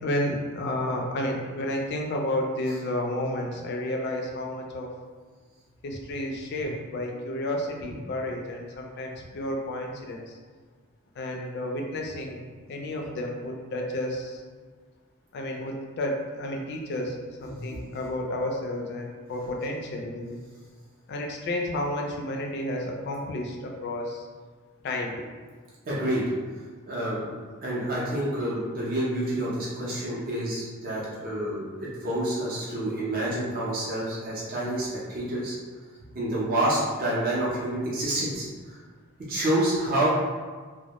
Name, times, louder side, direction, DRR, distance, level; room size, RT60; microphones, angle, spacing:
voice 1, 0.0-4.9 5.8-10.4 11.2-12.4 12.7-14.4 15.3-17.1 17.4-20.4 21.1-24.3 24.8-25.2, left 1 dB, 50° left, 1 dB, 0.3 m, -31 dB
voice 2, 17.5-17.8 25.9-26.2 26.9-27.3 27.6-35.6 36.1-38.8 39.3-40.1, right 1 dB, 40° right, -7 dB, 0.5 m, -28 dB
2.1 x 2.0 x 2.8 m, 1.5 s
head